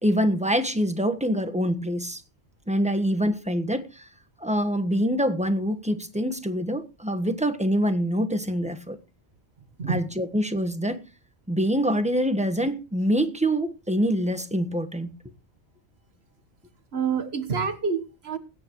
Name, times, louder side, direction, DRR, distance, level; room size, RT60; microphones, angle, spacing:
voice 1, 0.0-2.2 2.7-4.1 4.4-9.0 9.9-11.0 11.5-15.1, equal, 5° right, 1.3 m, -25 dB
voice 2, 16.9-18.4, right 5 dB, 60° right, 1.6 m, -27 dB
20.5 x 9.8 x 3.1 m
omnidirectional pair, 1.2 m